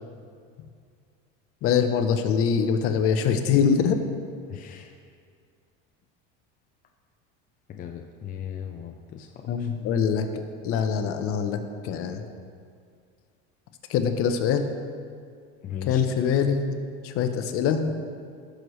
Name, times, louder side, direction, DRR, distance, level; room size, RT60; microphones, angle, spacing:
voice 1, 1.6-4.0 9.5-10.3 10.6-11.6 11.8-12.2 13.9-14.7 15.9-16.7 17.0-18.0, left 7 dB, 50° left, 7 dB, 0.8 m, -23 dB
voice 2, 4.5-4.9 7.7-9.7 15.6-16.0, left 9 dB, 30° left, 3 dB, 0.5 m, -37 dB
16.5 x 6.4 x 3.2 m, 2.2 s
cardioid pair, 140°, 29 cm